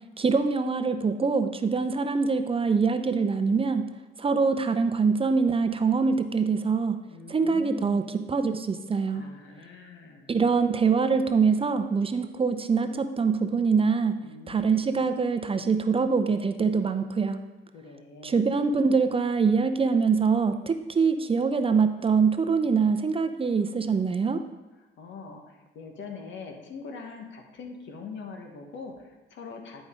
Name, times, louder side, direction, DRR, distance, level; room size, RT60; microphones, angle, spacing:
voice 1, 0.2-3.8 4.2-7.0 7.3-9.3 10.3-14.2 14.5-17.4 18.2-24.4, right 5 dB, 30° right, 8 dB, 0.5 m, -24 dB
voice 2, 7.1-8.3 9.1-10.4 14.2-14.8 17.7-18.5 25.0-29.8, left 5 dB, 70° left, 3 dB, 1.3 m, -43 dB
10.5 x 5.1 x 3.7 m, 1.1 s
cardioid pair, 90°, 20 cm